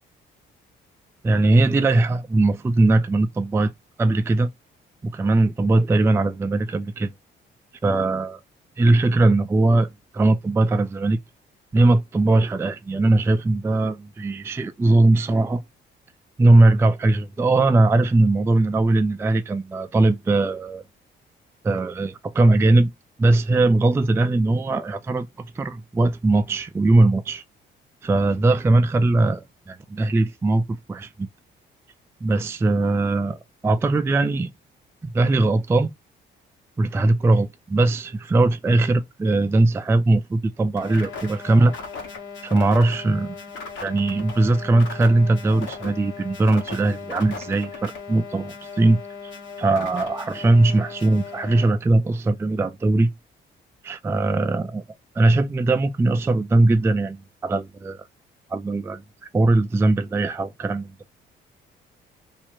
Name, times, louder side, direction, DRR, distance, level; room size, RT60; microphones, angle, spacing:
voice 1, 1.2-3.7 4.0-4.5 5.0-7.1 7.8-8.4 8.8-11.2 11.7-15.6 16.4-20.8 21.6-22.9 23.2-27.4 28.0-31.3 32.2-33.4 33.6-34.5 35.1-35.9 36.8-41.8 42.4-43.4 43.8-49.3 49.6-53.1 53.8-54.8 55.1-58.1 58.5-59.0 59.3-60.9, right 2 dB, 15° right, 0.3 m, -20 dB
sound 1, 40.8-51.7, left 5 dB, 70° left, 1.4 m, -37 dB
2.9 x 2.4 x 4.3 m
cardioid pair, 90°, 20 cm